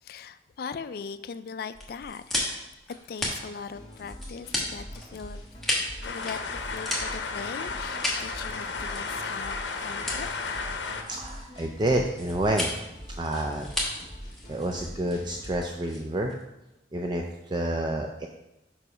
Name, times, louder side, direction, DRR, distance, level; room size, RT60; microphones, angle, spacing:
voice 1, 0.0-5.5 6.0-11.0, left 5 dB, 55° left, 12 dB, 0.3 m, -40 dB
sound 1, 1.7-16.4, left 1 dB, ahead, 1.2 m, -35 dB
sound 2, 3.7-15.6, equal, 30° left, 1.8 m, -44 dB
sound 3, 6.0-11.0, left 4 dB, 85° left, 0.7 m, -33 dB
voice 2, 11.0-12.7 13.2-13.7 14.5-16.4 16.9-18.3, right 1 dB, 25° right, 2 dB, 0.4 m, -29 dB
5.6 x 4.8 x 4.9 m, 0.93 s
head